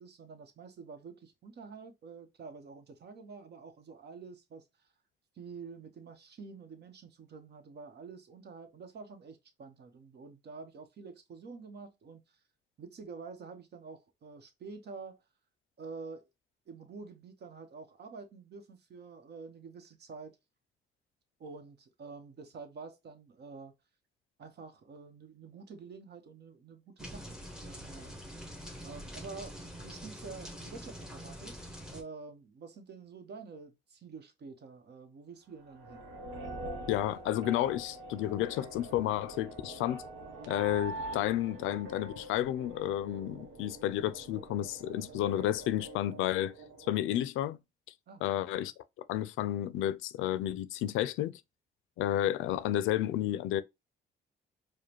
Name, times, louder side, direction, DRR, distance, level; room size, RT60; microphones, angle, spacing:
voice 1, 0.0-4.9 5.3-12.4 12.8-15.2 15.8-16.3 16.7-20.4 21.4-23.7 24.4-28.2 28.8-31.5 31.9-36.1 48.1-48.2, right 4 dB, 55° right, 1.0 m, -48 dB
sound 1, 27.0-32.0, equal, 5° right, 1.0 m, -45 dB
sound 2, 35.6-46.9, right 1 dB, 85° right, 0.9 m, -45 dB
voice 2, 36.9-40.0 40.5-46.5 46.9-47.6 48.2-48.7 49.1-51.4 52.0-53.6, left 12 dB, 90° left, 0.4 m, -31 dB
4.8 x 2.2 x 2.9 m
cardioid pair, 90°, 20 cm